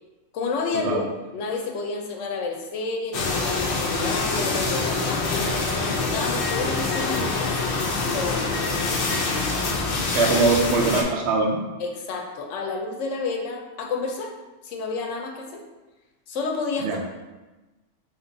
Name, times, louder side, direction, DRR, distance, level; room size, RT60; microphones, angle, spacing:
voice 1, 0.3-1.1 1.3-5.3 5.8-7.7 8.1-8.5 8.8-9.2 10.2-10.5 11.8-14.3 14.6-15.6 16.3-17.0, left 4 dB, 80° left, 2 dB, 0.9 m, -30 dB
sound 1, 3.1-11.0, left 3 dB, 60° left, 0.7 m, -25 dB
voice 2, 10.1-11.6 16.8-17.0, right 3 dB, 70° right, 2 dB, 0.9 m, -22 dB
4.4 x 3.1 x 2.6 m, 1.1 s
omnidirectional pair, 1.2 m